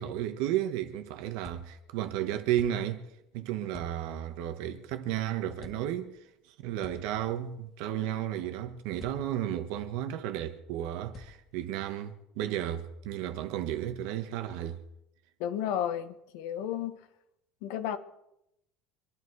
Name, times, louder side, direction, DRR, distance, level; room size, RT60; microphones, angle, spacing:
voice 1, 0.0-3.0 3.3-6.2 6.6-14.8, right 11 dB, 75° right, 1.5 m, -33 dB
sound 1, 1.4-2.0 2.6-3.1 3.7-4.3 5.5-6.2 6.8-7.7 9.0-9.6 11.1-11.8, left 3 dB, 30° left, 2.0 m, -51 dB
voice 2, 15.4-17.0 17.6-18.0, left 10 dB, 80° left, 1.4 m, -32 dB
25.5 x 11.0 x 4.8 m
cardioid pair, 160°, 0 cm